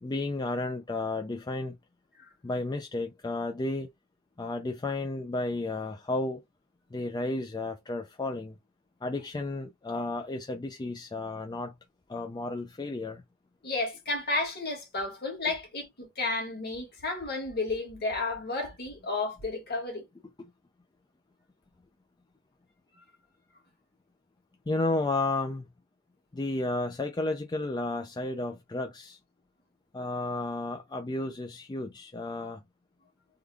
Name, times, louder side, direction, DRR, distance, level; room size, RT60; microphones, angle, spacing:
voice 1, 0.0-1.8 2.4-3.9 4.4-6.4 6.9-8.6 9.0-11.7 12.1-13.2 20.4-20.5 24.7-25.7 26.3-29.2 29.9-32.6, left 2 dB, 20° left, 0.4 m, -32 dB
voice 2, 13.6-20.0, left 3 dB, 45° left, 1.7 m, -32 dB
3.7 x 2.2 x 3.3 m
head